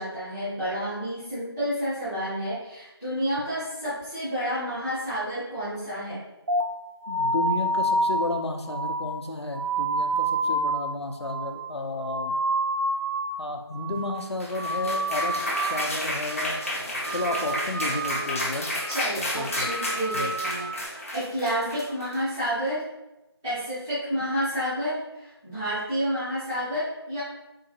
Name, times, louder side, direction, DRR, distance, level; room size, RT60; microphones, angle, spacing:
voice 1, 0.0-6.2 18.9-22.8 23.4-27.2, equal, 5° right, -18 dB, 0.7 m, -30 dB
sound 1, 6.5-13.5 13.7-14.2 14.5-16.0 16.2-16.7 17.0-18.5 18.8-19.2 19.5-20.9, right 1 dB, 55° right, 0.4 m, -29 dB
voice 2, 7.1-12.3 13.4-16.6 17.1-18.7 19.2-19.7 20.1-20.3, left 2 dB, 80° left, 4 dB, 0.5 m, -32 dB
sound 2, 14.2-22.5, left 1 dB, 35° left, 0.6 m, -31 dB
3.8 x 2.7 x 2.7 m, 0.95 s
figure-of-eight pair, 170°, 14 cm